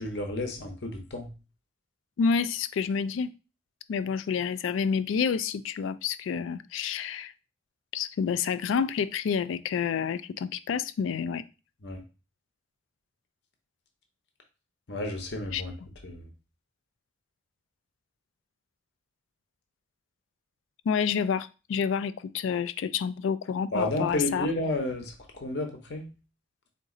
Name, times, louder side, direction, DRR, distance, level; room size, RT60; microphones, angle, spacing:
voice 1, 0.0-1.3 11.8-12.0 14.9-15.7 16.0-16.2 23.7-26.1, left 1 dB, 60° left, 4 dB, 0.8 m, -31 dB
voice 2, 2.2-3.3 3.9-7.3 7.9-11.4 15.5-15.6 20.9-24.5, left 6 dB, 90° left, 14 dB, 0.3 m, -28 dB
4.0 x 2.6 x 3.8 m, 0.31 s
head